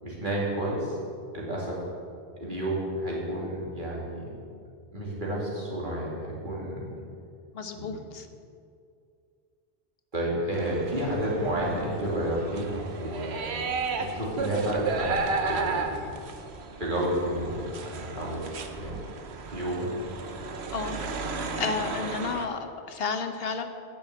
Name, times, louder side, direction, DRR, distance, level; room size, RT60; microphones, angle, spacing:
voice 1, 0.0-1.0 1.3-1.8 2.4-4.3 4.9-6.9 7.7-7.9 10.1-13.6 14.0-16.0 16.8-18.4 18.8-19.0 19.5-19.9, right 1 dB, 50° right, -5 dB, 2.8 m, -31 dB
voice 2, 7.5-8.3 20.7-21.0 21.3-23.6, left 5 dB, 70° left, 8 dB, 0.9 m, -32 dB
sound 1, 10.5-22.5, right 4 dB, 90° right, 1.1 m, -34 dB
10.5 x 6.7 x 7.8 m, 2.4 s
omnidirectional pair, 1.1 m